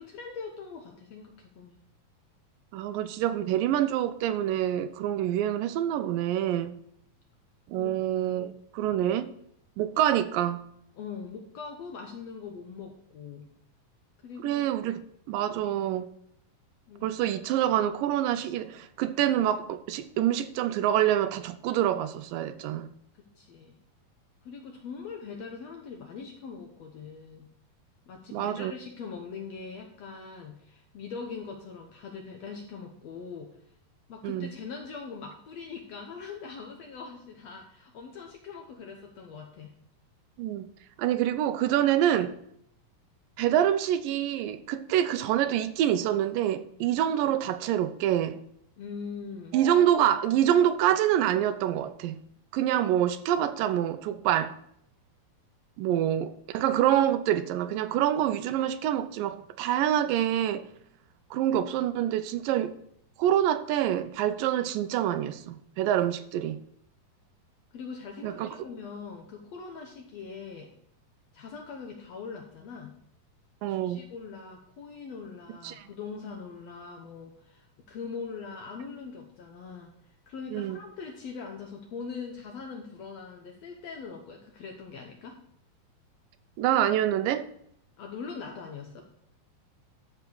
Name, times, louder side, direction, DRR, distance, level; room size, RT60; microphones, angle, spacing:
voice 1, 0.0-1.8 7.8-7.9 8.3-8.4 10.9-13.5 14.2-14.7 16.9-17.2 23.1-23.8 24.4-27.5 28.1-33.5 34.1-39.7 46.8-46.9 48.8-49.6 67.7-70.7 71.3-73.0 73.7-85.4 88.0-89.0, left 5 dB, 70° left, 1.7 m, -42 dB
voice 2, 2.7-6.8 7.7-9.3 9.8-10.6 14.4-15.0 15.3-16.1 17.0-22.9 28.3-28.7 34.2-34.5 40.4-40.7 41.0-42.3 43.4-48.4 49.5-52.2 52.5-54.6 55.8-60.7 61.3-62.7 63.2-66.6 68.2-68.6 73.6-74.0 75.6-75.9 80.5-80.8 86.6-87.5, right 11 dB, 85° right, 2.2 m, -26 dB
12.5 x 4.5 x 6.8 m
omnidirectional pair, 4.1 m